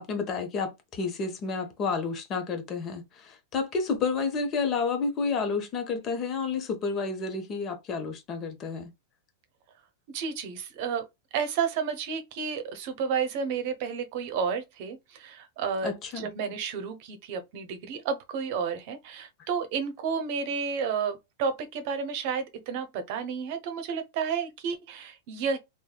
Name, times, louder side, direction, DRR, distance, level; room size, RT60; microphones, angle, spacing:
voice 1, 0.0-8.9 15.8-16.3, left 4 dB, 35° left, 0.8 m, -30 dB
voice 2, 10.1-11.0 11.3-25.6, right 6 dB, 55° right, 0.8 m, -31 dB
3.3 x 2.2 x 2.2 m
hypercardioid pair, 120°, 0 cm